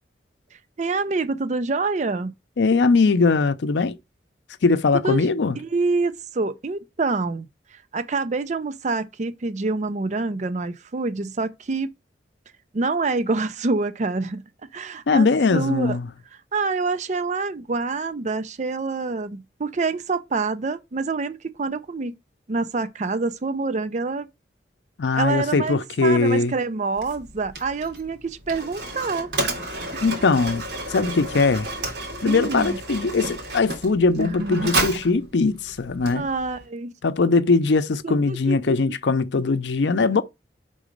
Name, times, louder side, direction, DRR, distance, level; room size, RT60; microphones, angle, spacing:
voice 1, 0.8-2.3 5.0-5.3 5.6-7.5 7.7-11.9 12.7-14.4 14.7-16.0 16.5-22.1 22.5-24.3 25.1-29.3 29.9-30.1 32.2-32.8 34.2-34.8 36.1-36.9 38.0-38.9, right 3 dB, 45° right, 0.5 m, -26 dB
voice 2, 2.6-4.0 4.6-5.6 15.1-16.1 25.0-26.6 30.0-30.6 30.9-31.7 32.2-36.3 37.0-40.2, left 4 dB, 90° left, 0.6 m, -20 dB
Mechanisms, 27.0-36.6, right 2 dB, 75° right, 1.9 m, -31 dB
5.0 x 3.9 x 5.2 m
head